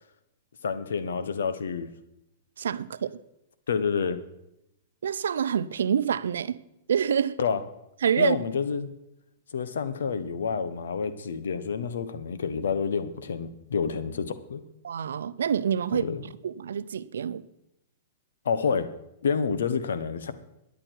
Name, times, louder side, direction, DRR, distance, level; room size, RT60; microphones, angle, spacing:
voice 1, 0.6-1.9 3.7-4.2 7.4-7.6 8.2-8.9 9.5-14.6 15.9-16.2 18.4-18.9 19.2-20.3, left 6 dB, 85° left, 1.1 m, -28 dB
voice 2, 2.6-3.2 5.0-6.6 6.9-7.4 8.0-8.4 14.8-16.1 16.4-17.4, right 8 dB, 90° right, 0.6 m, -26 dB
13.5 x 10.5 x 4.7 m
hypercardioid pair, 135°, 0 cm